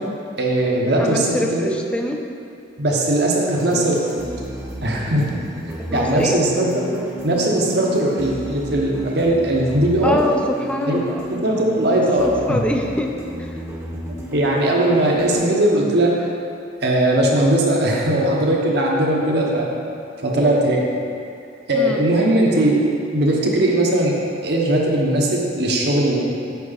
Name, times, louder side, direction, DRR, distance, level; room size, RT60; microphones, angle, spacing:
voice 1, 0.4-1.7 2.8-4.0 4.8-5.3 5.9-6.9 7.2-10.2 10.9-11.0 11.3-12.6 14.3-16.3 16.8-19.7 20.2-20.8 21.7-22.8 23.1-24.1 24.4-26.3, right 1 dB, 60° right, -2 dB, 1.1 m, -19 dB
voice 2, 1.0-2.2 5.9-6.4 10.0-11.3 12.2-13.6 21.7-22.0, left 1 dB, 5° left, 1 dB, 0.5 m, -24 dB
sound 1, 3.5-15.3, equal, 15° right, 0.9 m, -33 dB
8.3 x 5.9 x 4.1 m, 2.5 s
head